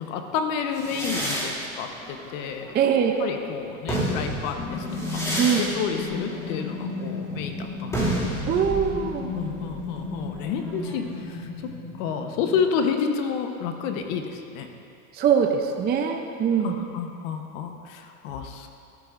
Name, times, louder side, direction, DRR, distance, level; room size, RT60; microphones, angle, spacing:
voice 1, 0.0-2.7 3.2-4.8 5.1-5.3 5.5-8.4 9.3-14.7 16.6-18.7, left 6 dB, 70° left, 5 dB, 1.1 m, -30 dB
sound 1, 0.7-3.2 3.7-11.2, right 1 dB, 5° left, 2.4 m, -31 dB
voice 2, 2.7-3.1 5.4-5.6 8.5-9.3 15.1-16.8, right 7 dB, 25° right, 3 dB, 0.6 m, -22 dB
sound 2, 4.6-12.6, left 3 dB, 35° left, 1.4 m, -35 dB
13.0 x 12.5 x 2.6 m, 2.5 s
supercardioid pair, 120°, 41 cm